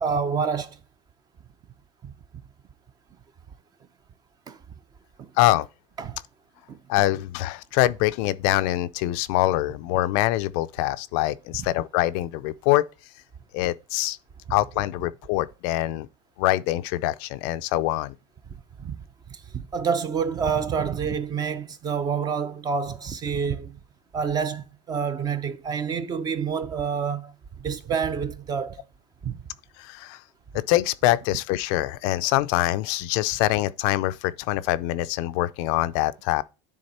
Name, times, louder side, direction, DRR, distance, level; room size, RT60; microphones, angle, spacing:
voice 1, 0.0-0.8 2.0-2.1 4.5-4.6 5.2-5.3 6.0-6.2 6.7-6.8 11.6-11.7 18.8-19.0 19.3-23.8 24.1-27.3 27.6-28.8 29.2-29.4, right 6 dB, 25° right, 0.6 m, -28 dB
voice 2, 5.4-5.7 6.9-12.8 13.5-14.2 14.5-16.1 16.4-18.1 29.8-30.2 30.5-36.4, left 16 dB, 60° left, 0.4 m, -24 dB
9.8 x 3.7 x 4.2 m
supercardioid pair, 140°, 15 cm